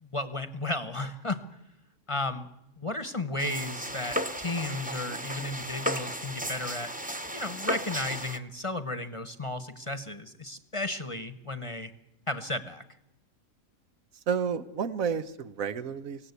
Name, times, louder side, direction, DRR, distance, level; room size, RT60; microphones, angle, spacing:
voice 1, 0.0-1.4 2.1-2.5 2.8-6.9 7.3-11.9 12.3-12.8, left 2 dB, 25° left, 11 dB, 0.9 m, -34 dB
sound 1, 3.4-8.4, equal, 10° right, 0.8 m, -34 dB
voice 2, 14.3-16.3, right 6 dB, 80° right, 11 dB, 1.4 m, -31 dB
24.5 x 17.0 x 8.2 m, 0.91 s
omnidirectional pair, 1.4 m